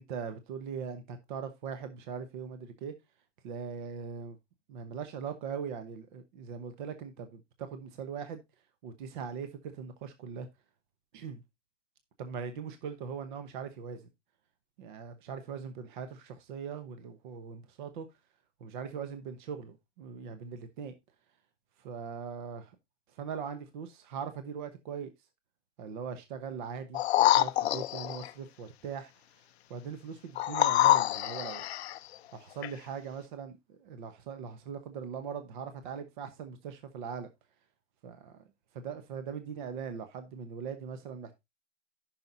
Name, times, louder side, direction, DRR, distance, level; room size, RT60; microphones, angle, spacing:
voice 1, 0.0-2.9 3.4-4.4 4.7-8.4 8.8-10.5 11.1-11.4 12.2-14.0 14.8-18.1 18.6-20.9 21.8-22.7 23.1-25.1 25.8-29.1 29.7-31.6 32.3-37.3 38.0-38.5 38.7-41.3, right 6 dB, 40° right, 1.0 m, -40 dB
sound 1, 26.9-28.3 30.4-32.0 32.6-32.7, left 14 dB, 60° left, 0.5 m, -26 dB
14.5 x 5.9 x 2.6 m
hypercardioid pair, 165°, 37 cm